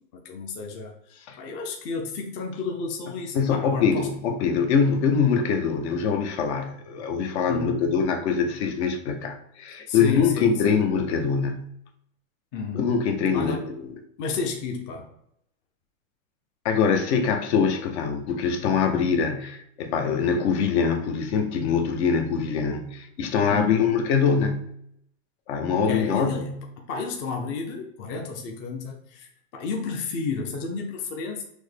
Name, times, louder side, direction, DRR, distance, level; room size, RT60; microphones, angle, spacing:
voice 1, 0.0-4.1 7.5-7.9 9.9-10.8 12.5-13.0 13.3-13.7 14.2-15.1 23.5-23.9 25.8-31.4, left 4 dB, 30° left, 1 dB, 0.6 m, -32 dB
voice 2, 3.3-11.7 12.7-13.9 16.6-24.7 25.5-26.6, left 6 dB, 55° left, 6 dB, 0.8 m, -24 dB
6.2 x 2.1 x 3.2 m, 0.73 s
supercardioid pair, 145°, 40 cm